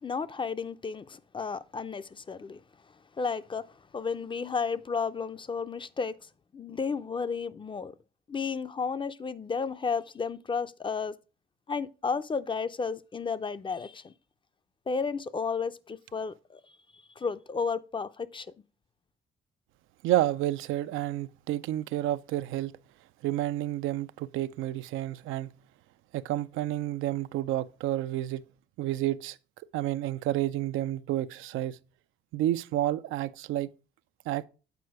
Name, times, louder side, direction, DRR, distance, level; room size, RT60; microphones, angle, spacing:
voice 1, 0.0-2.6 3.2-3.7 3.9-6.1 6.5-7.9 8.3-11.2 11.7-14.1 14.9-16.6 17.2-18.5, left 5 dB, 25° left, 0.4 m, -32 dB
voice 2, 20.0-22.7 23.2-25.5 26.1-28.4 28.8-29.4 29.7-31.8 32.3-33.7 34.3-34.5, right 13 dB, 90° right, 0.4 m, -30 dB
8.2 x 4.3 x 4.6 m
cardioid pair, 90°, 20 cm